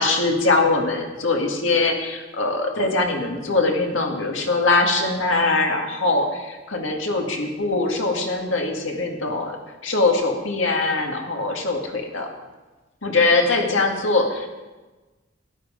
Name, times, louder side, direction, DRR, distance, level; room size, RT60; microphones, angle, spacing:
voice 1, 0.0-9.6 9.8-12.3 13.0-14.5, left 3 dB, 90° left, 2 dB, 2.0 m, -22 dB
13.0 x 11.0 x 5.0 m, 1.2 s
head